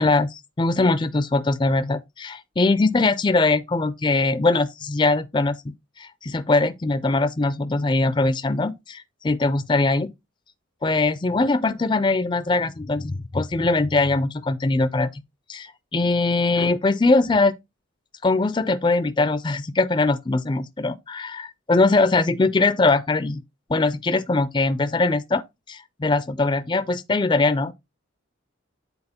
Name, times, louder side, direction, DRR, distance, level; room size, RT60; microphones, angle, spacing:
voice 1, 0.0-5.6 6.0-10.1 10.8-15.1 15.5-17.5 18.2-23.4 23.7-27.7, left 3 dB, 25° left, 0.4 m, -21 dB
8.8 x 4.1 x 4.1 m
head